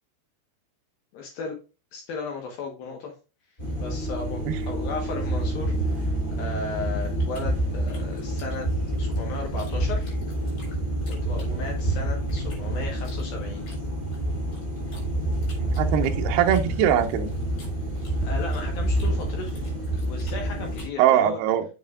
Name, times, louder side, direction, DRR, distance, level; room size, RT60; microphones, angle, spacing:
voice 1, 1.1-1.6 1.9-3.1 3.8-8.7 9.0-10.2 11.1-13.7 18.2-19.5 20.1-21.4, left 4 dB, 70° left, 1 dB, 2.3 m, -36 dB
sound 1, 3.6-20.9, right 1 dB, 10° left, 3.1 m, -28 dB
sound 2, 7.3-9.7 10.0-11.9 12.3-15.1 15.4-18.7 19.0-21.0, left 2 dB, 45° left, 6.0 m, -51 dB
voice 2, 15.6-17.3 21.0-21.7, right 10 dB, 85° right, 5 dB, 2.3 m, -22 dB
7.9 x 7.7 x 2.3 m, 0.30 s
omnidirectional pair, 5.7 m